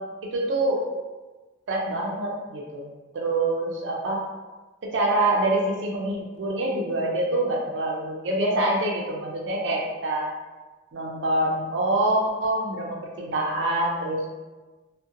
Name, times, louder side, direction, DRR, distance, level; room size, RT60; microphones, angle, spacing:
voice 1, 0.2-0.9 1.7-4.3 4.8-10.3 10.9-14.3, right 1 dB, 85° right, -2 dB, 0.5 m, -26 dB
2.7 x 2.1 x 2.4 m, 1.2 s
head